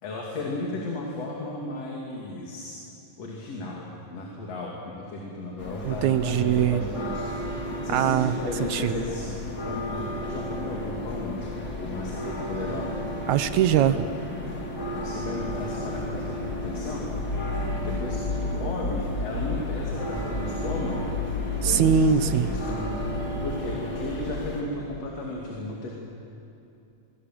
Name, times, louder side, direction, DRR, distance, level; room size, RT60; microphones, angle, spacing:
voice 1, 0.0-2.8 3.2-9.3 9.6-11.3 11.7-12.9 14.9-17.1 17.7-21.1 21.6-21.9 22.3-23.0 23.4-25.9, left 2 dB, 55° left, -2 dB, 3.6 m, -35 dB
sound 1, 5.6-24.6, left 1 dB, 30° left, 2.9 m, -32 dB
voice 2, 5.9-6.8 7.9-8.3 8.7-9.0 13.3-14.1 21.6-22.6, right 9 dB, 75° right, 11 dB, 1.9 m, -22 dB
25.5 x 23.5 x 7.6 m, 2.7 s
omnidirectional pair, 3.6 m